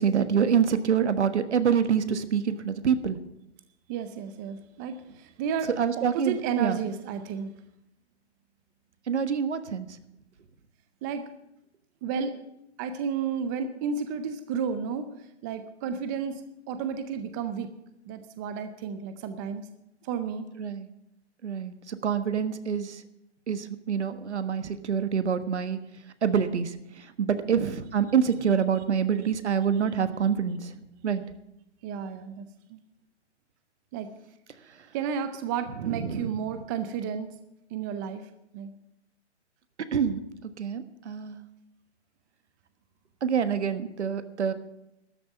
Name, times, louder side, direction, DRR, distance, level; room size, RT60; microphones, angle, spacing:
voice 1, 0.0-3.2 5.8-6.8 9.1-9.9 20.6-20.9 21.4-23.0 23.5-25.8 26.2-26.7 27.2-30.7 31.0-31.2 35.8-36.3 39.9-40.2 40.6-41.4 43.2-44.5, right 7 dB, 70° right, 12 dB, 1.4 m, -26 dB
voice 2, 3.9-5.7 6.0-7.5 11.0-11.2 12.0-12.3 12.8-15.1 15.4-16.4 16.7-17.7 18.1-19.6 20.0-20.5 27.5-27.7 31.8-32.8 33.9-34.1 34.9-37.3 37.7-38.2 38.5-38.7, right 7 dB, 15° right, 10 dB, 0.5 m, -32 dB
13.0 x 7.0 x 9.1 m, 0.84 s
hypercardioid pair, 140°, 35 cm